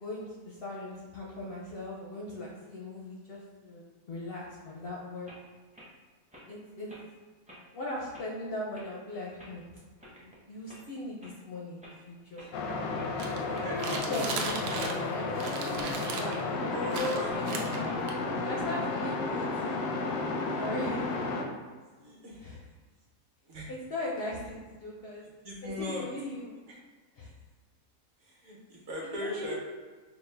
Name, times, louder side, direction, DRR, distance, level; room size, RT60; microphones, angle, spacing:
voice 1, 0.0-5.3 6.5-6.9 7.7-9.7 10.2-12.5 13.4-18.0 18.4-19.8 20.5-21.0 22.4-22.6 23.7-25.3 25.6-26.6 27.2-27.3 29.0-29.5, left 1 dB, 65° left, -4 dB, 0.6 m, -39 dB
sound 1, 5.3-5.4 5.7-5.9 6.3-6.5 6.9-7.1 7.5-7.6 8.1-8.3 8.7-8.9 9.4-9.6 10.0-10.4 10.7-10.8 11.2-11.3 11.8-12.0 12.4-12.5 12.9-13.1 13.5-13.7 14.1-14.3 14.7-14.8 15.2-15.3 15.7-15.9 16.3-16.4 16.8-16.9 17.3-17.5 17.8-18.3, equal, 10° right, 0.4 m, -51 dB
sound 2, 12.5-21.4, left 3 dB, 85° left, 1.2 m, -32 dB
sound 3, 13.2-15.1 15.4-16.4 16.9-18.1, right 4 dB, 80° right, 1.1 m, -36 dB
voice 2, 16.7-17.4 22.0-22.4 23.4-23.7 25.4-26.1 26.7-26.8 28.2-29.5, left 1 dB, 55° right, -3 dB, 1.1 m, -37 dB
4.7 x 2.1 x 3.3 m, 1.4 s
omnidirectional pair, 1.7 m